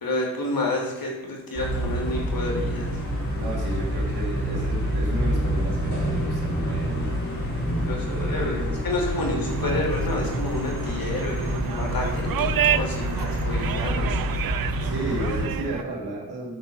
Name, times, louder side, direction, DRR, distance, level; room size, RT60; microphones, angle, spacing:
voice 1, 0.0-2.9 7.9-14.2, left 2 dB, 65° left, 0 dB, 3.3 m, -29 dB
sound 1, 1.5-15.5, equal, 50° left, 4.0 m, -27 dB
voice 2, 3.4-7.2 7.6-8.9 9.1-9.8 14.8-16.6, right 1 dB, 80° right, -3 dB, 2.9 m, -33 dB
sound 2, 9.5-15.8, right 10 dB, 65° right, 0.6 m, -30 dB
11.5 x 4.5 x 7.1 m, 1.0 s
cardioid pair, 45°, 38 cm